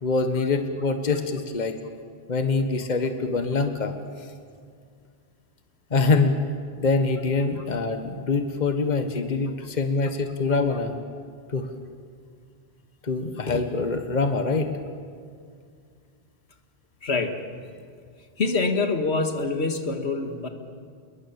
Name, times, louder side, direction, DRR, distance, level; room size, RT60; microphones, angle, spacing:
voice 1, 0.0-1.7 2.3-3.9 5.9-6.4 6.8-10.9 11.5-11.7 13.0-14.7, left 3 dB, 45° left, 7 dB, 1.6 m, -24 dB
voice 2, 17.0-17.4 18.4-20.5, left 3 dB, 80° left, 6 dB, 2.0 m, -25 dB
27.0 x 21.5 x 7.1 m, 2.2 s
omnidirectional pair, 1.1 m